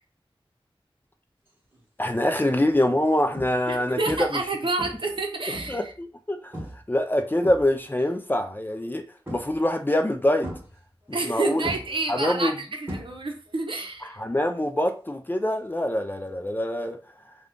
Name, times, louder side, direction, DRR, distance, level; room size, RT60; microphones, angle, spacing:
sound 1, 1.7-2.0 2.6-2.8 3.3-3.8 4.1-4.5 4.8-5.9 6.5-6.9 7.2-8.1 9.3-9.8 10.4-11.3 11.6-13.5 13.8-14.2 16.3-16.4, equal, 25° right, 1.2 m, -38 dB
voice 1, 2.0-4.4 5.7-9.0 9.3-10.5 11.1-11.7 12.1-12.5 14.2-17.0, left 1 dB, 20° left, 0.4 m, -25 dB
voice 2, 3.7-5.9 11.1-14.2, right 3 dB, 60° right, 0.7 m, -29 dB
2.5 x 2.3 x 3.6 m
wide cardioid pair, 65°, 10 cm